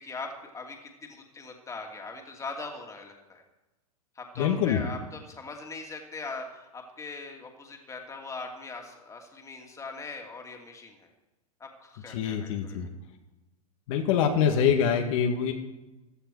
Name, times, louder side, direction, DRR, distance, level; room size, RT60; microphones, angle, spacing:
voice 1, 0.0-3.4 4.1-11.1 11.6-12.9, left 3 dB, 15° left, 2 dB, 2.6 m, -41 dB
voice 2, 4.4-4.8 12.1-12.9 13.9-15.5, left 8 dB, 60° left, 3 dB, 1.8 m, -25 dB
15.5 x 11.5 x 4.7 m, 1.0 s
hypercardioid pair, 110°, 19 cm